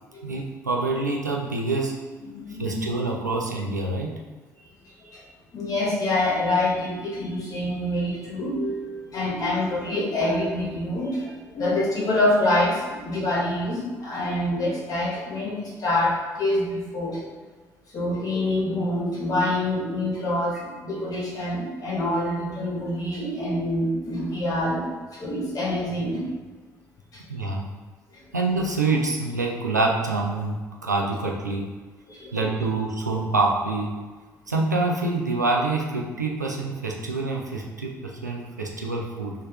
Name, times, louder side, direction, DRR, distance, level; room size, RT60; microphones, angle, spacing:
voice 1, 0.2-2.0 2.6-4.2 22.3-22.4 27.3-27.7 28.3-31.7 32.3-33.9 34.5-39.3, right 3 dB, 90° right, -1 dB, 0.4 m, -26 dB
voice 2, 2.2-2.9 5.5-17.2 17.9-24.9 25.2-26.3 32.1-32.5, left 1 dB, 40° left, -3 dB, 0.9 m, -26 dB
4.8 x 3.2 x 2.2 m, 1.3 s
figure-of-eight pair, 45°, 9 cm